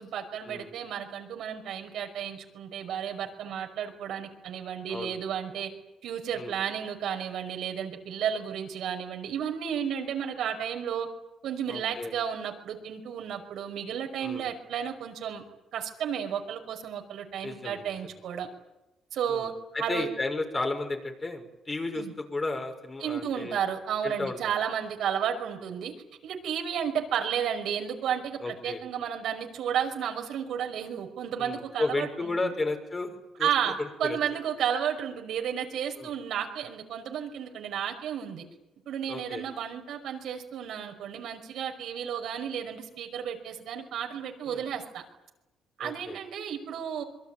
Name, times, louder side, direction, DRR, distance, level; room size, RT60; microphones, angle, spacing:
voice 1, 0.0-5.7 6.0-11.1 11.4-15.4 15.7-18.5 19.1-19.5 19.8-20.1 22.0-22.1 23.0-25.9 26.2-32.3 33.4-38.5 38.9-45.0 45.8-47.0, right 8 dB, 70° right, 4 dB, 5.6 m, -32 dB
voice 2, 11.7-12.1 14.2-14.4 17.4-18.0 19.3-19.5 19.7-23.6 24.0-24.4 28.4-28.8 31.4-33.5 33.8-34.2 36.0-36.1 39.1-39.5 44.4-44.6 45.8-46.2, left 2 dB, 25° left, 4 dB, 6.1 m, -33 dB
27.0 x 23.0 x 9.2 m, 0.95 s
cardioid pair, 105°, 0 cm